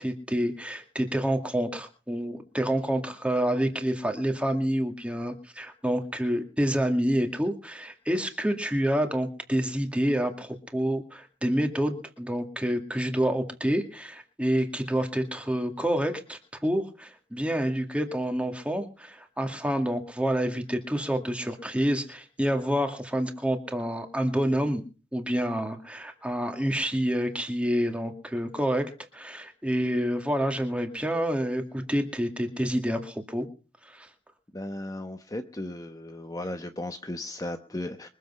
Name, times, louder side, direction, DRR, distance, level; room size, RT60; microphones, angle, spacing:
voice 1, 0.0-24.8 25.1-33.5 33.8-34.1, equal, 5° right, 5 dB, 2.2 m, -28 dB
voice 2, 34.5-38.1, left 1 dB, 20° left, 7 dB, 0.9 m, -36 dB
23.5 x 7.9 x 5.6 m, 0.36 s
head